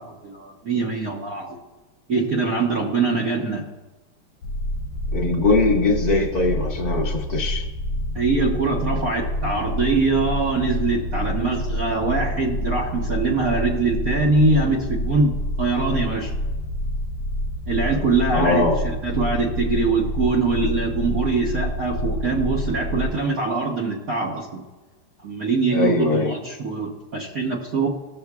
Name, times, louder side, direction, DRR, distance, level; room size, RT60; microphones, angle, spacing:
voice 1, 0.0-1.6 2.1-3.6 8.1-16.3 17.7-24.6 25.2-27.9, right 3 dB, 50° right, -2 dB, 1.2 m, -23 dB
sound 1, 4.4-23.1, left 1 dB, 70° left, 1.0 m, -27 dB
voice 2, 5.1-7.7 18.3-18.8 25.7-26.3, left 3 dB, 45° left, -2 dB, 1.9 m, -21 dB
19.5 x 6.9 x 2.3 m, 1.2 s
omnidirectional pair, 2.4 m